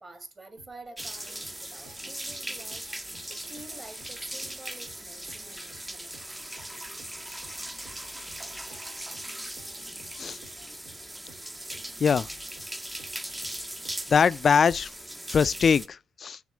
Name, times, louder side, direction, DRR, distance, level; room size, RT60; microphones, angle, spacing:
voice 1, 0.0-6.4, right 2 dB, 25° right, 1.9 m, -48 dB
sound 1, 0.6-14.3, right 4 dB, 80° right, 1.9 m, -55 dB
sound 2, 1.0-15.9, right 1 dB, 10° right, 0.6 m, -39 dB
voice 2, 14.1-14.9 15.3-16.4, left 6 dB, 45° left, 0.3 m, -22 dB
7.0 x 3.6 x 6.1 m
cardioid pair, 90°, 0 cm